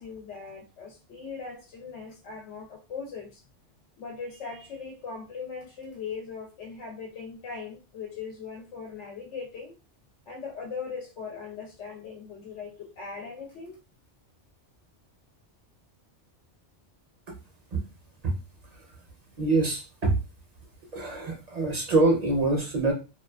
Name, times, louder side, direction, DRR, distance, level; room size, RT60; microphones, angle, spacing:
voice 1, 0.0-3.4 4.0-9.8 10.3-13.8, left 5 dB, 80° left, 1 dB, 0.9 m, -39 dB
voice 2, 19.4-20.2 20.9-22.9, right 2 dB, 45° right, -1 dB, 0.6 m, -24 dB
2.3 x 2.3 x 2.2 m, 0.30 s
omnidirectional pair, 1.2 m